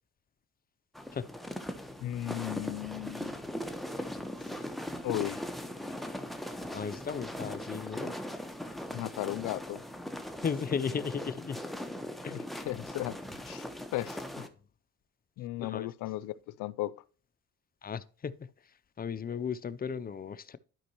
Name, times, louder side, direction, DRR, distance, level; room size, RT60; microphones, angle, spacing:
sound 1, 0.9-14.5, left 1 dB, ahead, 1.0 m, -40 dB
voice 1, 2.0-3.5 5.0-5.4 8.9-9.8 12.3-13.2 13.4-13.7 13.9-14.5 15.4-16.9, left 16 dB, 85° left, 0.5 m, -36 dB
voice 2, 6.7-8.1 10.4-11.6 12.2-12.4 15.6-15.9 17.8-18.5 19.0-20.6, left 6 dB, 30° left, 0.5 m, -35 dB
11.5 x 5.2 x 2.9 m
cardioid pair, 90°, 30 cm